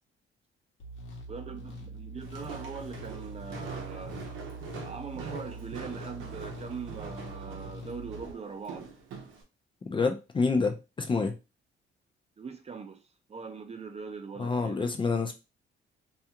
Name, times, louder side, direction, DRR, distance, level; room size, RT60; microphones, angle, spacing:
sound 1, 0.8-8.3, right 1 dB, 80° left, 0.9 m, -43 dB
voice 1, 1.3-4.2 4.7-8.9 12.4-13.0 13.3-14.9, right 5 dB, 30° right, 0.5 m, -41 dB
Walk footsteps, 2.2-9.4, right 5 dB, 85° right, 0.7 m, -43 dB
voice 2, 9.9-11.3 14.4-15.3, left 4 dB, 25° left, 0.4 m, -27 dB
2.4 x 2.3 x 2.8 m
cardioid pair, 90°, 20 cm